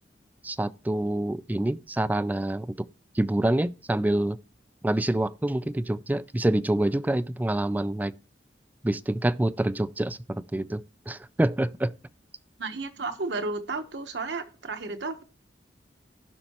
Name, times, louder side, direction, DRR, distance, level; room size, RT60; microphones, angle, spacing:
voice 1, 0.4-2.9 3.1-4.4 4.8-8.1 8.8-11.9, right 1 dB, 10° right, 0.3 m, -26 dB
voice 2, 12.6-15.2, right 3 dB, 85° right, 1.1 m, -33 dB
16.0 x 5.5 x 2.9 m
head